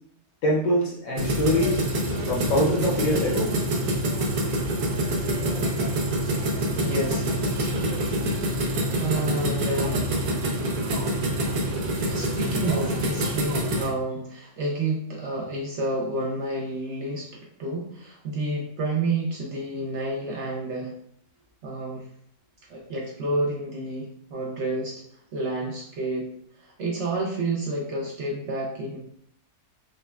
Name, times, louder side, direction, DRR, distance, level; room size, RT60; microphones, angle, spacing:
voice 1, 0.4-1.8 2.3-3.5, left 1 dB, 70° left, -3 dB, 1.1 m, -24 dB
sound 1, 1.2-13.9, right 1 dB, 85° right, 1.2 m, -26 dB
voice 2, 6.8-7.8 9.0-10.1 12.1-20.9 21.6-22.1 22.7-25.0 25.3-29.0, right 2 dB, 65° right, -1 dB, 0.7 m, -30 dB
5.0 x 2.2 x 2.2 m, 0.66 s
omnidirectional pair, 1.6 m